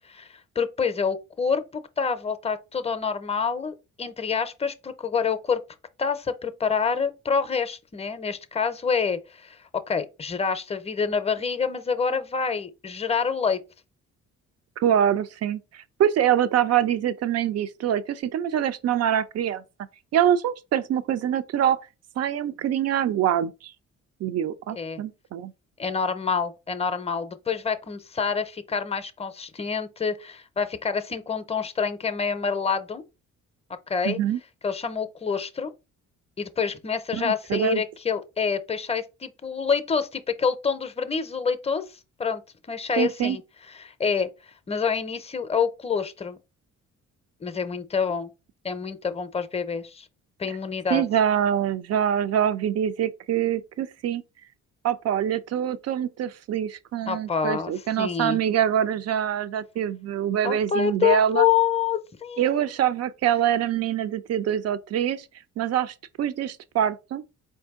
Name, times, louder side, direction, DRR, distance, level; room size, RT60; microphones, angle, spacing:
voice 1, 0.1-5.6 6.0-9.6 9.9-13.6 24.7-25.0 25.8-33.0 33.9-34.2 34.6-35.7 36.4-41.9 42.2-42.4 42.7-43.4 43.7-46.4 47.4-48.3 48.6-50.1 50.4-51.0 57.1-58.4 60.4-62.4, left 6 dB, 20° left, 0.6 m, -27 dB
voice 2, 14.8-19.6 20.1-21.8 22.2-23.7 24.2-25.5 34.0-34.4 37.1-37.8 43.0-43.4 50.9-54.2 54.8-61.4 62.4-65.2 65.6-67.2, right 10 dB, 55° right, 0.5 m, -24 dB
4.3 x 2.6 x 3.6 m
cardioid pair, 90°, 30 cm